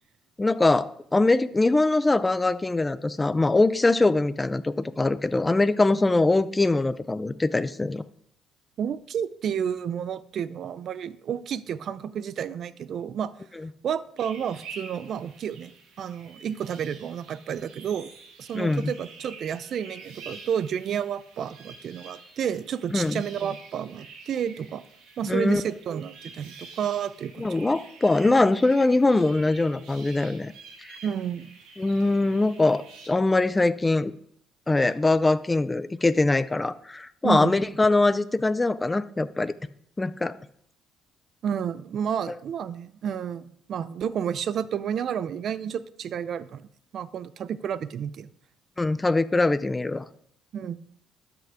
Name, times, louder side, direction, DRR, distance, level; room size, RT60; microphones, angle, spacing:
voice 1, 0.4-8.0 18.5-18.9 22.9-23.2 25.3-25.6 27.4-30.5 30.8-31.0 31.8-34.1 34.7-39.5 40.0-40.3 48.8-50.1, left 2 dB, 15° left, 14 dB, 0.4 m, -22 dB
voice 2, 8.8-13.3 13.8-18.1 18.4-24.8 25.2-27.5 31.0-31.5 37.2-37.5 41.4-43.4 43.7-46.7 46.9-48.3 50.5-50.8, right 8 dB, 55° right, 16 dB, 0.5 m, -31 dB
sound 1, 14.2-33.1, right 4 dB, 85° right, 1.9 m, -48 dB
12.5 x 6.0 x 3.5 m, 0.70 s
cardioid pair, 105°, 0 cm